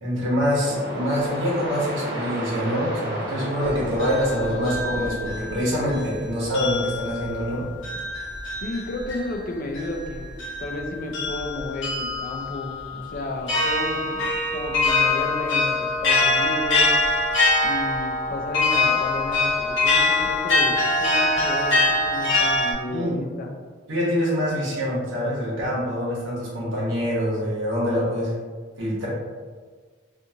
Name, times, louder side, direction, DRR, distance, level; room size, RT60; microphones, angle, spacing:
voice 1, 0.0-7.6 22.8-23.2 23.9-28.3 28.8-29.1, equal, 85° right, -7 dB, 1.1 m, -25 dB
sound 1, 0.6-8.0, right 1 dB, 55° right, 0.8 m, -34 dB
sound 2, 3.6-6.2 6.5-22.7, left 2 dB, 75° left, 0.8 m, -24 dB
voice 2, 8.6-16.9 17.6-23.5, left 1 dB, 45° left, 3 dB, 0.3 m, -32 dB
2.6 x 2.4 x 2.7 m, 1.5 s
head